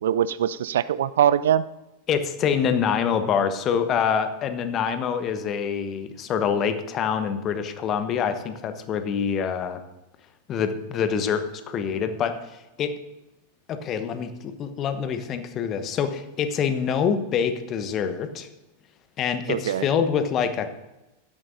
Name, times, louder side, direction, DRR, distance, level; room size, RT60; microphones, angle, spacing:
voice 1, 0.0-1.6 19.5-19.9, right 10 dB, 60° right, 16 dB, 0.3 m, -22 dB
voice 2, 2.1-9.8 10.5-12.5 12.8-12.9 13.7-18.5 19.2-20.8, left 7 dB, 30° left, 9 dB, 1.1 m, -25 dB
16.0 x 12.5 x 2.7 m, 0.99 s
figure-of-eight pair, 90°, 0 cm